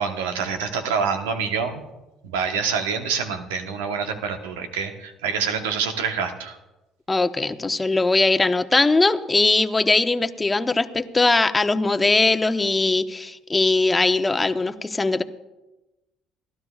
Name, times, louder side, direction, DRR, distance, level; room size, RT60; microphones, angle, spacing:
voice 1, 0.0-1.8 2.2-6.6, right 6 dB, 90° right, 6 dB, 1.1 m, -26 dB
voice 2, 7.1-15.2, left 3 dB, 20° left, 9 dB, 0.9 m, -20 dB
29.5 x 12.5 x 2.4 m, 1.0 s
hypercardioid pair, 65°, 0 cm